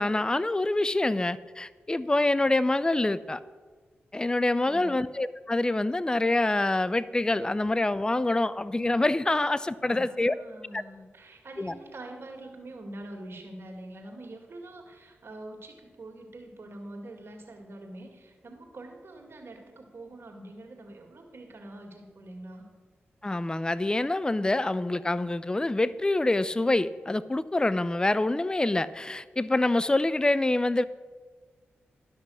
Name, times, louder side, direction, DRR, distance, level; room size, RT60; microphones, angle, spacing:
voice 1, 0.0-3.4 4.1-10.3 10.7-10.8 11.6-11.7 23.2-30.8, left 2 dB, 15° left, 17 dB, 0.4 m, -26 dB
voice 2, 4.6-5.0 9.9-22.7, right 1 dB, 55° right, 3 dB, 2.0 m, -44 dB
11.5 x 5.9 x 6.3 m, 1.4 s
supercardioid pair, 40°, 5 cm